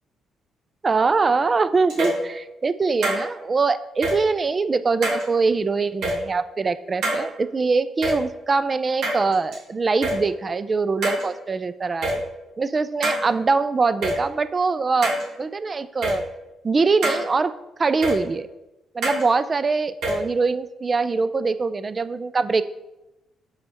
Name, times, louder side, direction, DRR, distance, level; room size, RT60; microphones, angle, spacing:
voice 1, 0.8-12.2 12.6-16.2 16.6-17.5 17.8-18.5 18.9-22.6, right 4 dB, 35° right, 14 dB, 0.3 m, -23 dB
sound 1, 1.9-2.2 3.0-3.2 4.0-4.1 5.0-5.2 6.0-6.1 7.0-7.2 8.0-8.1 9.0-9.6 10.0-10.1 11.0-11.2 12.0-12.1 13.0-13.2 14.0-14.1 15.0-15.2 16.0-16.1 17.0-17.2 18.0-18.1 19.0-19.2 20.0-20.1, right 1 dB, 80° right, 1.7 m, -24 dB
7.0 x 5.3 x 3.0 m, 0.96 s
cardioid pair, 90°, 0 cm